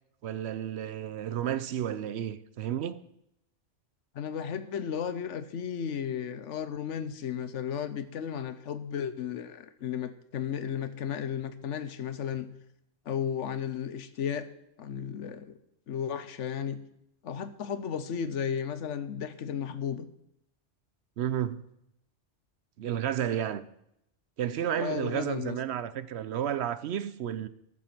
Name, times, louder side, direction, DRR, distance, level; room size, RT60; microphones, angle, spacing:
voice 1, 0.2-3.0 21.2-21.7 22.8-23.6 24.4-27.5, right 10 dB, 65° right, 0.8 m, -32 dB
voice 2, 4.1-12.5 13.1-14.5 14.8-15.6 15.9-16.8 17.2-20.1 24.8-25.6, left 8 dB, 75° left, 1.1 m, -34 dB
13.0 x 7.4 x 5.9 m
omnidirectional pair, 1.3 m